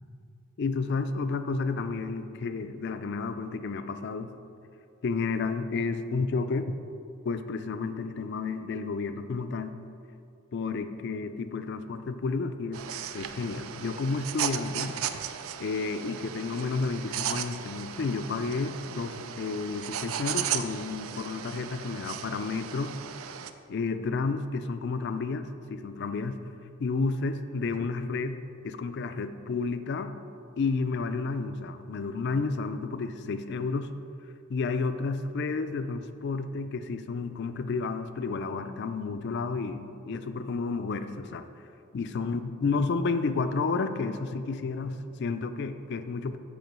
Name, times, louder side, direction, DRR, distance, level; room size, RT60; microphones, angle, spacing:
voice 1, 0.6-4.3 5.0-6.7 7.3-9.8 10.5-12.9 13.1-14.9 15.6-23.0 23.7-26.4 26.8-28.4 28.6-30.2 30.6-33.9 34.5-41.4 41.9-46.4, left 4 dB, 55° left, 10 dB, 0.4 m, -31 dB
sound 1, 12.7-23.5, right 9 dB, 85° right, 0.4 m, -36 dB
8.1 x 4.3 x 6.0 m, 2.6 s
head